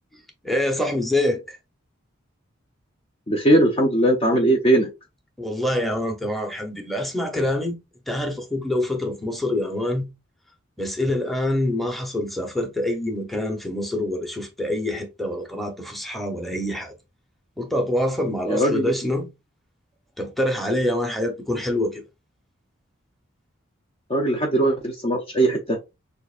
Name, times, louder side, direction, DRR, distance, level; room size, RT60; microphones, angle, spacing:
voice 1, 0.4-1.6 5.4-7.8 8.1-10.1 10.8-16.9 17.6-19.3 20.2-22.0, left 1 dB, ahead, 0.9 m, -25 dB
voice 2, 3.3-4.9 18.5-18.9 24.1-25.8, right 1 dB, 30° left, 0.6 m, -20 dB
6.5 x 2.6 x 2.5 m
head